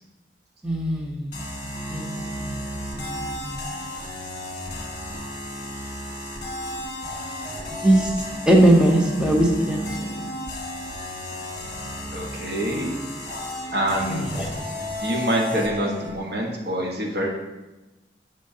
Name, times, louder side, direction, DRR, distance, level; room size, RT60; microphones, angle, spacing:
voice 1, 0.6-1.3 1.9-2.6 2.9-3.6 7.7-8.1 8.5-10.3 14.1-14.5, right 1 dB, 5° right, 0 dB, 0.7 m, -21 dB
sound 1, 1.3-16.1, left 1 dB, 40° left, 1.5 m, -33 dB
voice 2, 12.1-13.0 13.7-14.5 15.0-17.3, right 1 dB, 65° right, 0 dB, 1.2 m, -26 dB
9.8 x 6.4 x 2.8 m, 1.1 s
head